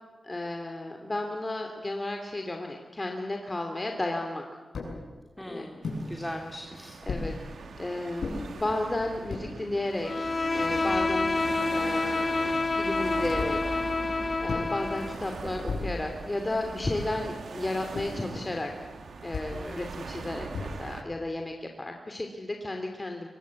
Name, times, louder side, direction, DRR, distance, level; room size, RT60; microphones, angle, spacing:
voice 1, 0.2-4.4 5.4-5.6 7.1-7.3 7.8-11.4 11.7-13.6 14.4-18.7 19.2-23.3, left 2 dB, 25° left, 3 dB, 2.7 m, -33 dB
sound 1, 4.7-5.0 5.8-6.1 7.1-7.3 8.2-8.4 9.1-9.5 10.2-10.3 10.5-11.6 13.4-13.7 14.5-14.8 15.7-16.0 16.8-17.2 17.9-18.3 19.3-19.6 20.5-21.0, left 4 dB, 80° left, 7.4 m, -35 dB
voice 2, 5.4-7.0 19.5-19.9, equal, 5° left, 2 dB, 3.0 m, -40 dB
sound 2, 5.8-21.0, right 4 dB, 85° right, 2.1 m, -40 dB
Bowed string instrument, 10.0-15.2, left 3 dB, 45° left, 0.7 m, -28 dB
23.5 x 21.5 x 8.4 m, 1.3 s
cardioid pair, 70°, 0 cm